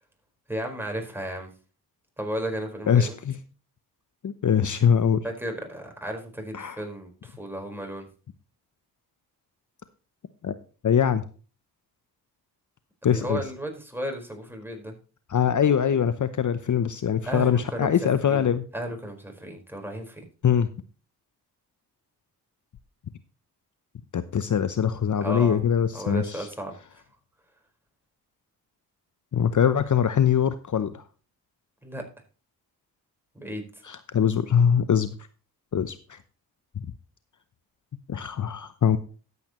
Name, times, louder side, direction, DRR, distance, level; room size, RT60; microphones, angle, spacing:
voice 1, 0.5-1.5 2.2-3.2 5.2-8.1 13.1-14.9 17.2-17.9 18.3-18.5 18.7-20.2 25.2-25.6 25.9-26.7 31.8-32.0 33.3-33.6, right 1 dB, 5° right, 3 dB, 4.8 m, -34 dB
voice 2, 2.9-3.4 4.2-5.2 6.5-6.8 10.4-10.5 10.8-11.2 13.0-13.4 15.3-18.6 20.4-20.7 24.1-26.5 29.3-31.0 33.8-35.1 35.7-36.2 36.8-36.9 38.1-39.0, left 8 dB, 50° left, 12 dB, 0.8 m, -23 dB
13.5 x 8.3 x 3.1 m, 0.37 s
supercardioid pair, 50°, 39 cm